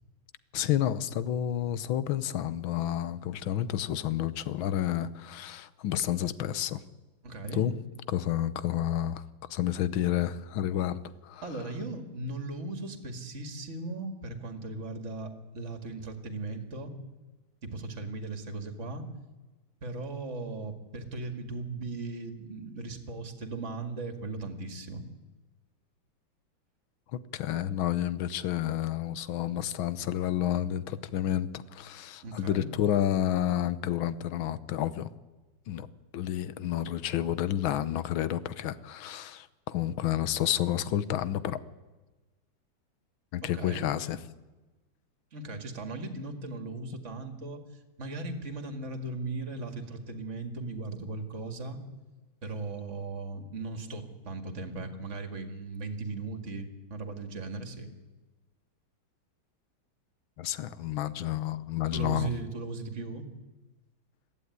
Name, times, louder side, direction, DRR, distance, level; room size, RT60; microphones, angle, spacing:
voice 1, 0.5-6.8 7.6-7.7 8.1-9.2 9.5-11.4 27.3-35.1 35.7-35.9 36.1-41.6 43.3-44.2 60.4-62.3, left 11 dB, 75° left, 16 dB, 1.6 m, -30 dB
voice 2, 7.2-7.6 11.4-16.9 17.6-19.1 19.8-25.0 32.2-32.7 43.4-43.9 45.3-47.6 48.0-51.8 52.4-57.9 61.9-63.3, right 3 dB, 35° right, 7 dB, 2.2 m, -37 dB
21.0 x 15.0 x 9.6 m, 1.2 s
omnidirectional pair, 2.3 m